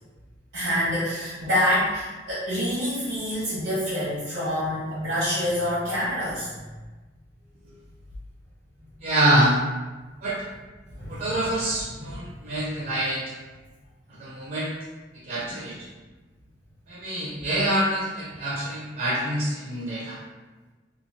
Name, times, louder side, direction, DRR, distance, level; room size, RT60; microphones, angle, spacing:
voice 1, 0.5-6.5 10.9-11.2 12.0-12.2 15.4-15.5 18.3-18.5, equal, 75° right, -10 dB, 0.9 m, -27 dB
voice 2, 9.0-9.6 10.2-10.4 11.1-13.2 14.2-14.8 15.2-15.9 16.9-20.2, right 1 dB, 50° right, -6 dB, 0.5 m, -25 dB
3.0 x 2.3 x 2.7 m, 1.2 s
head